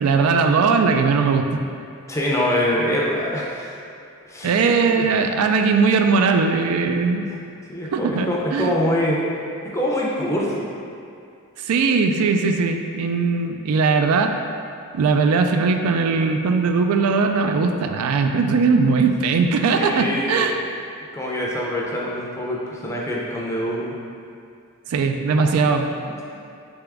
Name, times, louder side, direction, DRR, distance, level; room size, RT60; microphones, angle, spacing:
voice 1, 0.0-1.6 4.4-7.2 7.9-8.7 11.6-14.4 14.9-20.6 24.9-25.9, right 4 dB, 85° right, 5 dB, 0.3 m, -19 dB
voice 2, 2.1-3.7 4.3-5.1 7.3-7.4 7.7-9.2 9.6-10.7 19.8-20.5 21.1-23.9 26.1-26.2, equal, 15° left, -4 dB, 0.5 m, -24 dB
3.9 x 3.5 x 3.4 m, 2.4 s
head